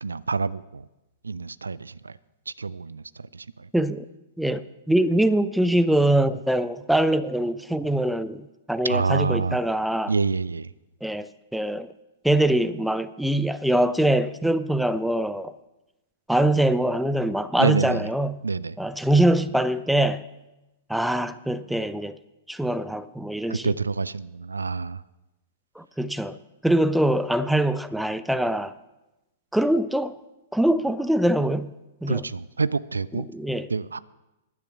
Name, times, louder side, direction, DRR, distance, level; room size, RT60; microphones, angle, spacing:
voice 1, 0.0-0.9 1.2-2.2 2.5-3.7 8.8-9.6 10.1-10.7 17.6-18.1 18.4-18.8 23.5-25.0 32.1-33.3 33.7-34.0, right 4 dB, 75° right, 0.3 m, -27 dB
voice 2, 3.7-4.1 4.4-10.1 11.0-11.9 12.2-15.5 16.3-18.4 18.8-20.2 20.9-22.2 22.5-23.7 25.8-26.4 26.6-28.7 29.5-30.2 30.5-31.7 32.0-32.2 33.3-33.7, right 1 dB, ahead, 0.5 m, -23 dB
11.0 x 9.9 x 5.9 m
figure-of-eight pair, 105°, 0 cm